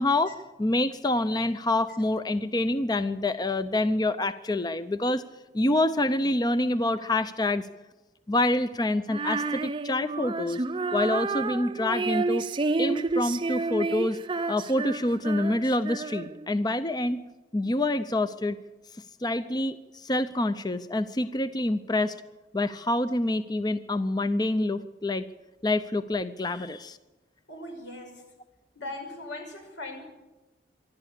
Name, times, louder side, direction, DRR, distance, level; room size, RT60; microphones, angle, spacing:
voice 1, 0.0-5.2 5.5-7.7 8.3-10.6 10.9-12.4 12.8-14.2 14.5-17.2 17.5-18.6 19.2-22.2 22.5-25.3 25.6-27.0, left 1 dB, 20° left, 12 dB, 0.6 m, -27 dB
Female singing, 9.1-16.5, right 3 dB, 25° right, 0.5 m, -30 dB
voice 2, 27.5-28.2 28.8-30.0, left 2 dB, 90° left, 4 dB, 5.5 m, -39 dB
25.5 x 12.0 x 8.3 m, 1.1 s
head